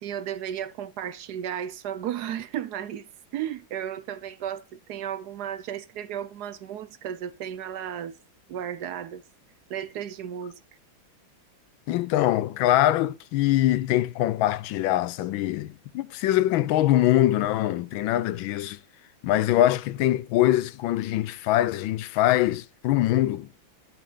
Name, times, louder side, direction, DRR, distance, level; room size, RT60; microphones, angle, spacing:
voice 1, 0.0-8.1 8.5-9.2 9.7-10.6, right 10 dB, 70° right, 1.1 m, -34 dB
voice 2, 11.9-18.8 19.2-23.5, left 14 dB, 85° left, 1.4 m, -23 dB
11.0 x 5.8 x 3.9 m
omnidirectional pair, 2.1 m